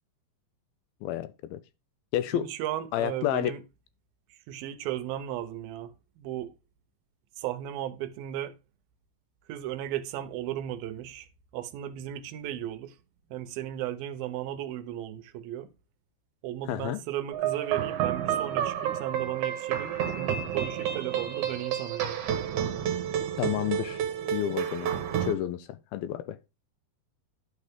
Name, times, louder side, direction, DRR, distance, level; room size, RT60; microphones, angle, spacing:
voice 1, 1.0-1.6 2.1-2.5 2.9-3.5 16.7-17.0 23.4-24.0 24.3-24.9 25.2-26.4, left 12 dB, 85° left, 2.6 m, -30 dB
voice 2, 2.3-3.6 4.3-6.5 7.4-8.6 9.5-11.3 11.5-13.0 13.3-15.7 16.4-22.2, right 12 dB, 80° right, 2.7 m, -35 dB
sound 1, 17.3-25.3, right 9 dB, 60° right, 2.6 m, -30 dB
11.5 x 6.8 x 3.6 m
omnidirectional pair, 4.3 m